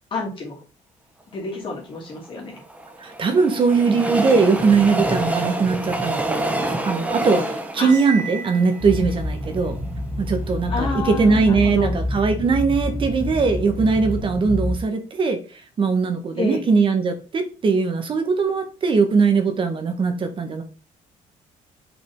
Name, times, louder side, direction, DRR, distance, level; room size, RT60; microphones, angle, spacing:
voice 1, 0.1-0.5 1.3-2.6 7.8-7.9 10.7-11.9 16.4-16.6, left 3 dB, 40° left, 2.8 m, -29 dB
Train, 2.2-9.5 10.0-10.1 10.3-10.4, right 1 dB, 10° right, 1.1 m, -27 dB
voice 2, 3.0-9.8 10.2-15.4 15.8-20.6, right 4 dB, 35° right, 1.3 m, -20 dB
Cymbal, 7.8-9.2, right 7 dB, 60° right, 1.0 m, -34 dB
sound 1, 8.8-14.8, left 1 dB, 20° left, 1.5 m, -28 dB
5.6 x 5.5 x 3.6 m
cardioid pair, 135°, 14 cm